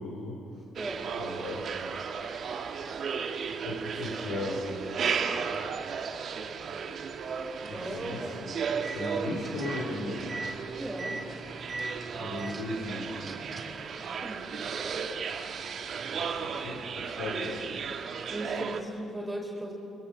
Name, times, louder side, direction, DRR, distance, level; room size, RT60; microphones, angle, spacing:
voice 1, 0.0-0.6 1.2-1.7 2.1-2.6 3.6-4.7 7.7-8.5 8.9-10.3 12.1-13.2 16.3-17.6, left 2 dB, 85° left, -4 dB, 4.5 m, -37 dB
sound 1, 0.8-18.8, right 6 dB, 60° right, 1.6 m, -35 dB
voice 2, 7.7-8.7 10.8-11.1 14.0-14.4 17.2-17.4 18.3-19.7, right 1 dB, 20° right, 0 dB, 4.6 m, -37 dB
sound 2, 8.7-13.8, right 2 dB, 40° right, 3.7 m, -41 dB
29.0 x 22.0 x 6.4 m, 2.9 s
supercardioid pair, 60°, 0 cm